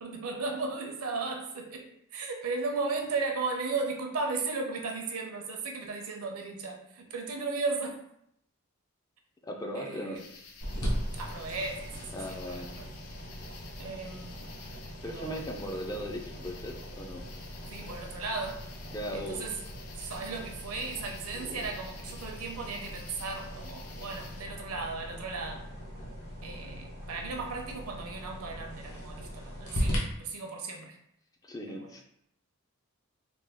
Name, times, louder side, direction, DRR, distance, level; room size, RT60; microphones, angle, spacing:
voice 1, 0.0-8.0 9.7-10.2 11.2-12.9 13.8-14.6 15.0-15.5 17.7-18.7 19.1-19.5 20.0-25.7 26.4-31.0 31.7-31.9, right 3 dB, 70° right, 2 dB, 0.6 m, -36 dB
voice 2, 9.4-10.2 12.1-12.7 15.0-17.2 18.9-19.5 21.3-21.6 31.4-32.0, equal, 15° left, 2 dB, 0.3 m, -38 dB
sound 1, 10.1-24.5, left 5 dB, 85° left, 0.5 m, -51 dB
sound 2, 10.6-30.0, equal, 70° left, 0.9 m, -39 dB
3.3 x 2.2 x 3.5 m, 0.73 s
head